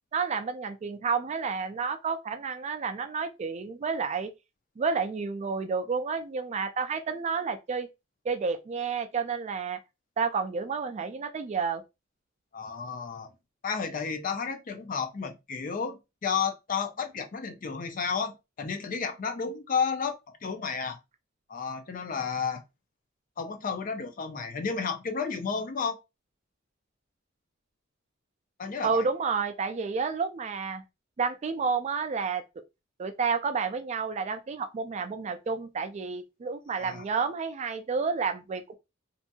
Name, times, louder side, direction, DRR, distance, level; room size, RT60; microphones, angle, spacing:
voice 1, 0.1-4.3 4.8-7.9 8.2-9.8 10.2-11.8 28.8-30.8 31.2-32.4 33.0-38.7, right 5 dB, 35° right, 0.3 m, -30 dB
voice 2, 12.5-13.3 13.6-21.0 21.5-22.6 23.4-26.0 28.6-29.1 36.8-37.0, left 6 dB, 45° left, 0.5 m, -32 dB
2.7 x 2.6 x 2.2 m
head